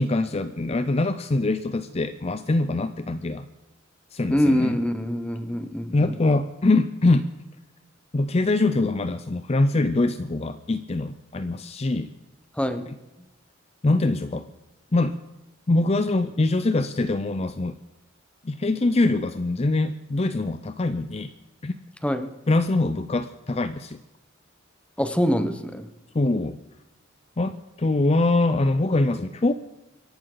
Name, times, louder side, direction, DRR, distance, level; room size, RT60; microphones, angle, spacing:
voice 1, 0.0-3.4 4.1-4.8 5.9-7.3 8.1-12.1 13.8-14.5 14.9-15.2 15.7-17.7 18.4-21.3 21.6-21.7 22.5-24.0 26.1-26.6 27.4-29.5, left 2 dB, 30° left, 10 dB, 0.5 m, -23 dB
voice 2, 4.3-6.1 12.6-12.9 22.0-22.3 25.0-25.9, equal, 5° left, 9 dB, 1.0 m, -24 dB
26.5 x 11.5 x 3.9 m, 1.0 s
head